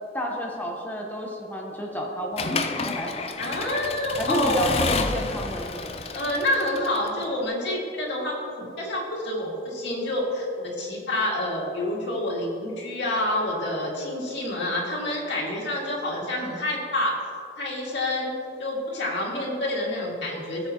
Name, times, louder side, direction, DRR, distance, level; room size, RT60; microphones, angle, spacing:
voice 1, 0.1-3.2 4.2-5.9, equal, 10° left, -1 dB, 1.0 m, -31 dB
Accelerating revving vroom / Mechanisms, 2.4-7.3, left 4 dB, 35° left, 0.4 m, -30 dB
voice 2, 3.4-4.8 6.1-17.1 17.6-18.3 18.6-20.7, left 1 dB, 90° left, -3 dB, 2.1 m, -28 dB
14.5 x 7.0 x 2.9 m, 2.4 s
head